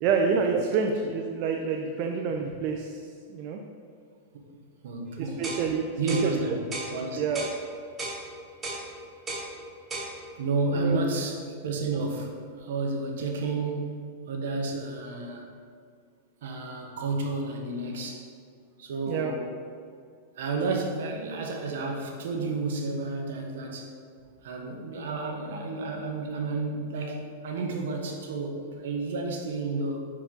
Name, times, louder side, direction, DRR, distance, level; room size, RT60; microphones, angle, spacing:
voice 1, 0.0-3.0 3.3-3.6 5.2-6.4 7.2-7.5 10.7-11.0 19.1-19.3, right 5 dB, 45° right, 3 dB, 0.5 m, -28 dB
voice 2, 4.8-5.5 6.0-6.6 6.9-7.2 10.4-15.5 16.4-18.3 18.8-19.5 20.4-23.9 24.4-30.0, right 3 dB, 75° right, 2 dB, 1.0 m, -31 dB
sound 1, 5.4-5.6 6.1-6.3 6.7-6.9 7.3-7.6 8.0-8.2 8.6-8.8 9.3-9.5 9.9-10.1, right 2 dB, 20° right, 1.0 m, -34 dB
5.8 x 4.6 x 3.8 m, 2.2 s
supercardioid pair, 145°, 0 cm